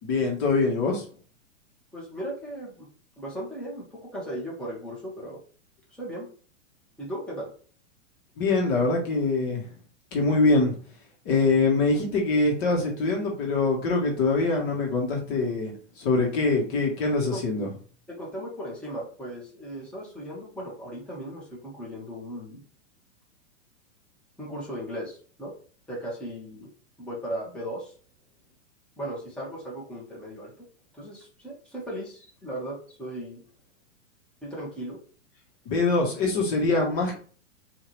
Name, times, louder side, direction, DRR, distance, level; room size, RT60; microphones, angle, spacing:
voice 1, 0.0-1.0 8.4-9.7 10.1-10.8 11.2-17.7 35.6-37.2, left 3 dB, 40° left, -1 dB, 1.4 m, -24 dB
voice 2, 1.9-2.9 3.2-5.4 5.9-6.3 7.0-7.5 17.2-17.4 18.1-22.6 24.4-25.5 25.9-26.7 27.0-27.9 29.0-30.5 30.9-33.4 34.4-35.0, right 1 dB, 5° left, -6 dB, 1.6 m, -37 dB
4.7 x 2.8 x 3.2 m, 0.42 s
hypercardioid pair, 125°, 39 cm